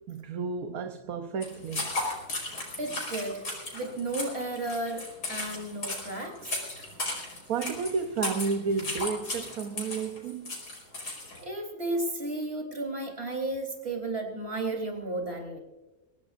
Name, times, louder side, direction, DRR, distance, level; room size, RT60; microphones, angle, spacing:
voice 1, 0.1-1.9 7.5-10.6, right 5 dB, 65° right, 1.3 m, -32 dB
sound 1, 1.4-11.4, left 2 dB, 80° left, 5.3 m, -35 dB
voice 2, 2.8-3.4 3.7-6.5 11.4-15.6, right 2 dB, 40° right, 4.1 m, -33 dB
23.5 x 17.0 x 2.5 m
omnidirectional pair, 1.7 m